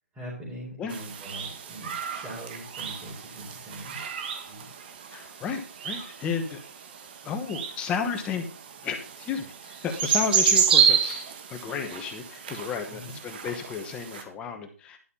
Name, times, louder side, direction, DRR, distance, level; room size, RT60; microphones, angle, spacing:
voice 1, 0.1-4.0 4.5-4.7 12.9-13.1, right 1 dB, 10° right, -8 dB, 4.4 m, -41 dB
sound 1, 0.9-14.2, right 7 dB, 40° right, 1.6 m, -29 dB
voice 2, 5.1-6.6 7.2-8.5 8.8-11.2 11.5-15.0, left 6 dB, 15° left, 6 dB, 1.1 m, -32 dB
11.5 x 6.5 x 5.5 m, 0.39 s
hypercardioid pair, 155°, 8 cm